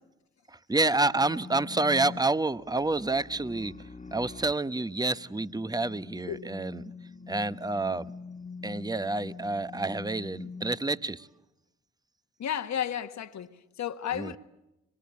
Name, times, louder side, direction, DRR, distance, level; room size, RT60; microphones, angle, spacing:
voice 1, 0.7-3.7 4.1-6.8 7.3-8.0 8.6-11.3 14.1-14.3, right 2 dB, 10° right, 1.0 m, -28 dB
sound 1, 1.1-10.7, left 4 dB, 20° left, 1.7 m, -44 dB
voice 2, 12.4-14.4, left 9 dB, 55° left, 1.6 m, -33 dB
25.5 x 23.0 x 8.5 m
hypercardioid pair, 50°, 34 cm